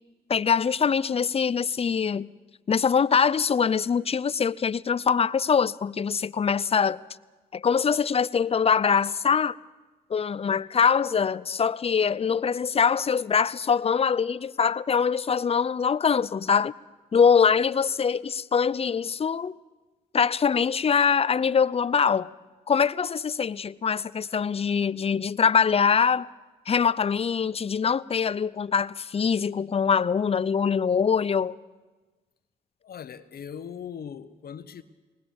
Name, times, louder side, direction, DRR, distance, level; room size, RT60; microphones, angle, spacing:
voice 1, 0.3-2.3 2.7-7.0 7.5-9.6 10.1-16.7 17.1-19.6 20.1-22.3 22.7-26.3 26.7-31.6, left 6 dB, 35° left, 0.6 m, -23 dB
voice 2, 32.8-34.8, left 8 dB, 60° left, 1.1 m, -39 dB
20.5 x 19.5 x 7.2 m
supercardioid pair, 65°, 17 cm